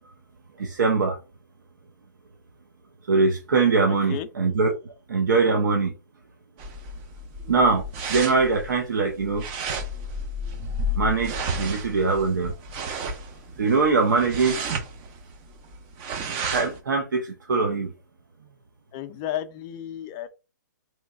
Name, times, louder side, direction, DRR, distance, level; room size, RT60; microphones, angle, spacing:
voice 1, 0.6-1.2 3.1-4.7 5.1-5.9 7.5-7.8 8.1-9.4 11.0-12.5 13.6-14.6 16.5-17.9, right 4 dB, 70° right, 0.6 m, -22 dB
sound 1, 6.6-16.8, right 1 dB, 30° right, 0.6 m, -32 dB
voice 2, 18.9-20.3, left 11 dB, 30° left, 0.4 m, -32 dB
3.1 x 3.1 x 2.4 m
hypercardioid pair, 130°, 10 cm